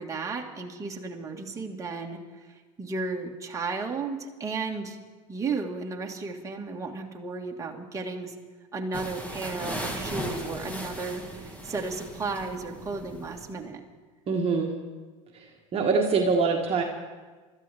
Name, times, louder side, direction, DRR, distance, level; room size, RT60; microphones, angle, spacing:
voice 1, 0.0-5.0 5.3-8.3 8.7-13.8, right 4 dB, 15° right, 0 dB, 1.9 m, -34 dB
sound 1, 8.9-13.6, right 1 dB, 10° left, 2.1 m, -37 dB
voice 2, 14.3-14.7 15.3-16.8, right 4 dB, 35° right, 0 dB, 1.6 m, -24 dB
25.5 x 13.5 x 3.6 m, 1.4 s
supercardioid pair, 105°, 18 cm